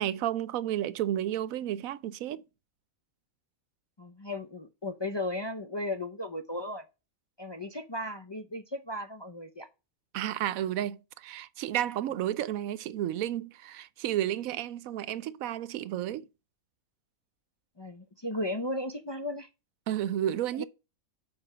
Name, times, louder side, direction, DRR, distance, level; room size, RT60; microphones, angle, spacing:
voice 1, 0.0-2.4 10.1-16.3 19.9-20.6, right 12 dB, 90° right, 1.0 m, -32 dB
voice 2, 4.0-6.8 7.4-9.7 17.8-19.5 20.5-20.6, left 1 dB, 30° left, 0.5 m, -35 dB
7.1 x 5.0 x 6.6 m
omnidirectional pair, 1.4 m